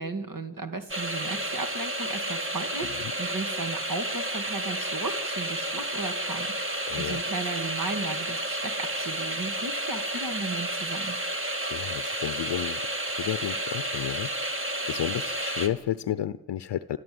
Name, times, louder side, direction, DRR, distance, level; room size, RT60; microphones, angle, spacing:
voice 1, 0.0-11.2, right 3 dB, 50° right, 6 dB, 2.3 m, -35 dB
sound 1, 0.9-15.7, right 1 dB, 30° right, 2.6 m, -31 dB
voice 2, 6.9-7.2 11.7-12.8 13.1-14.3 14.9-17.0, left 11 dB, 75° left, 13 dB, 0.8 m, -31 dB
28.5 x 13.0 x 7.9 m, 1.0 s
supercardioid pair, 45°, 42 cm